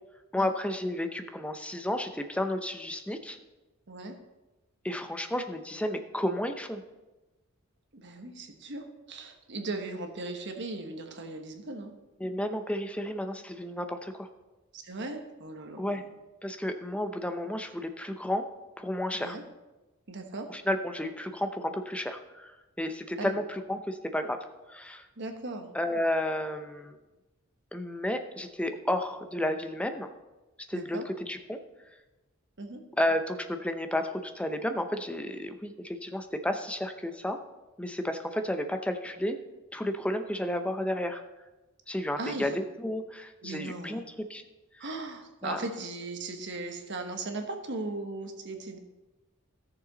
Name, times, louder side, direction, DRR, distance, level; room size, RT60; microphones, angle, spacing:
voice 1, 0.3-3.4 4.8-6.8 12.2-14.3 15.8-16.0 16.4-18.4 18.8-19.4 20.5-22.5 22.8-24.4 24.7-25.1 25.7-27.0 27.7-30.1 30.7-31.6 33.0-37.4 37.8-39.4 39.7-41.2 41.9-44.0 44.3-44.4 44.8-44.9 45.4-45.6, left 1 dB, 5° left, 7 dB, 0.7 m, -32 dB
voice 2, 7.9-11.9 14.7-16.1 19.1-19.4 20.1-20.5 23.2-23.4 25.2-25.7 30.7-31.1 32.6-32.8 42.2-42.6 43.4-44.0 44.8-48.8, right 2 dB, 60° right, 5 dB, 1.2 m, -38 dB
14.0 x 6.9 x 4.0 m, 1.1 s
head